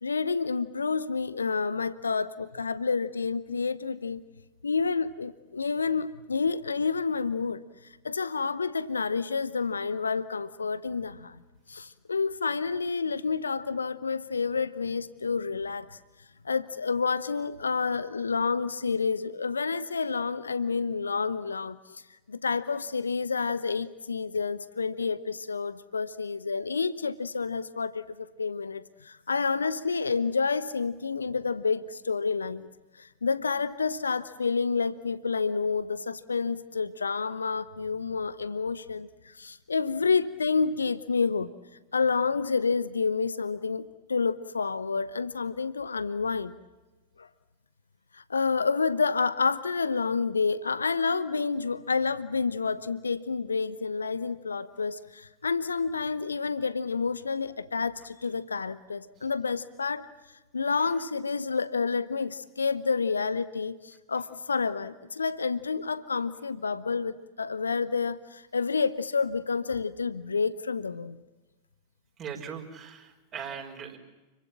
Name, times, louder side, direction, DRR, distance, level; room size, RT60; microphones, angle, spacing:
voice 1, 0.0-4.2 4.6-11.4 11.7-16.0 16.4-22.0 22.3-32.7 33.0-41.5 41.9-43.8 44.1-46.5 47.2-47.3 48.1-60.1 60.5-71.2, left 5 dB, 75° left, 15 dB, 0.9 m, -29 dB
voice 2, 72.2-74.0, right 7 dB, 30° right, 2 dB, 5.4 m, -39 dB
29.5 x 23.5 x 7.4 m, 1.1 s
figure-of-eight pair, 90°, 0 cm